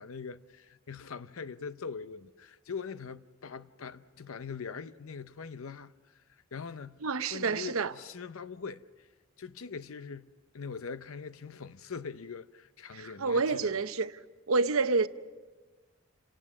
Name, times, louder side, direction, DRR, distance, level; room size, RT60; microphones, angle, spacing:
voice 1, 0.0-6.2 6.5-9.1 9.4-10.3 10.5-13.8, left 5 dB, 80° left, 0.6 m, -42 dB
voice 2, 7.0-7.9 12.9-14.1 14.5-15.1, right 4 dB, 80° right, 0.8 m, -28 dB
28.5 x 18.5 x 6.0 m
head